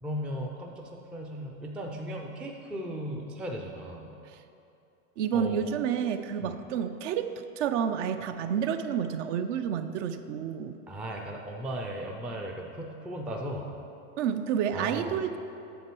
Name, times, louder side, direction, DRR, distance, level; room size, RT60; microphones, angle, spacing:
voice 1, 0.0-4.1 5.3-5.7 6.4-6.6 10.9-13.7 14.7-15.2, equal, 5° right, 1 dB, 0.3 m, -37 dB
voice 2, 5.2-7.3 7.6-10.8 14.2-15.4, right 8 dB, 60° right, 9 dB, 0.6 m, -29 dB
9.3 x 6.9 x 4.5 m, 2.7 s
supercardioid pair, 125°, 40 cm